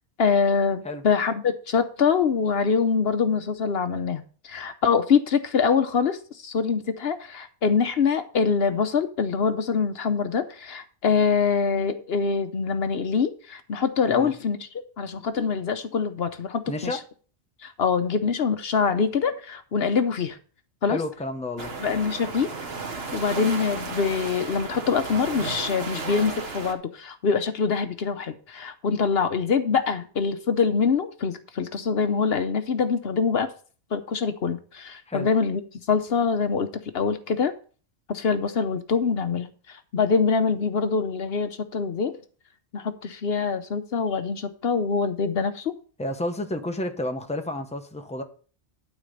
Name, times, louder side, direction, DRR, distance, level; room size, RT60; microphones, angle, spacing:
voice 1, 0.2-14.7 15.0-17.0 17.6-20.4 20.8-21.0 21.8-22.5 23.1-33.5 33.9-35.6 35.9-37.5 38.1-42.1 42.7-45.8, left 5 dB, 65° left, 1.0 m, -24 dB
voice 2, 16.7-17.0 20.9-21.7 35.1-35.3 46.0-48.2, left 1 dB, 5° left, 0.9 m, -30 dB
sound 1, 21.6-26.7, right 4 dB, 60° right, 1.6 m, -34 dB
12.5 x 4.2 x 6.6 m
omnidirectional pair, 1.1 m